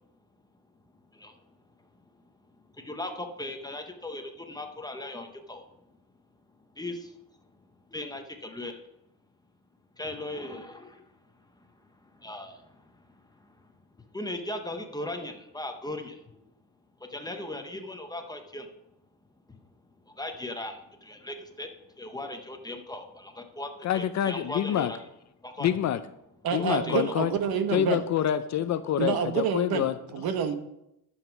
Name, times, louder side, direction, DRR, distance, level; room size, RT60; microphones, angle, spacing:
voice 1, 2.8-5.6 6.8-7.1 7.9-8.8 10.0-11.0 12.1-12.9 13.4-13.5 14.1-16.4 17.0-18.7 19.5-19.6 20.1-21.7 22.0-25.0 25.4-25.7 26.6-27.1, left 1 dB, 10° left, 4 dB, 0.7 m, -38 dB
voice 2, 23.8-24.9 25.6-26.0 26.5-27.3 27.7-30.0, left 11 dB, 45° left, 12 dB, 0.4 m, -27 dB
voice 3, 26.4-28.0 29.0-29.9 30.1-30.6, right 7 dB, 55° right, 9 dB, 1.2 m, -27 dB
11.0 x 7.2 x 5.8 m, 0.85 s
cardioid pair, 180°, 42 cm